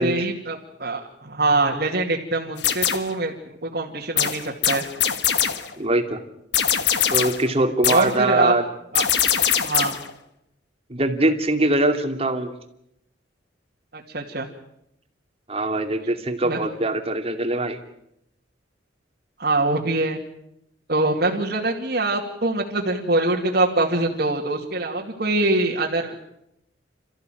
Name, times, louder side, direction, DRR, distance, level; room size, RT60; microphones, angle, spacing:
voice 1, 0.0-4.8 7.8-8.5 8.9-9.1 9.6-9.9 13.9-14.5 16.4-16.6 19.4-20.2 20.9-26.3, right 2 dB, 55° right, -2 dB, 2.6 m, -24 dB
sound 1, 2.6-3.2 4.2-5.7 6.5-7.5 7.8-8.2 9.0-10.1, left 9 dB, 65° left, 1.5 m, -22 dB
voice 2, 5.8-6.2 7.1-8.7 10.9-12.5 15.5-17.8, right 2 dB, 30° right, 5 dB, 2.6 m, -22 dB
29.0 x 14.5 x 9.2 m, 0.80 s
head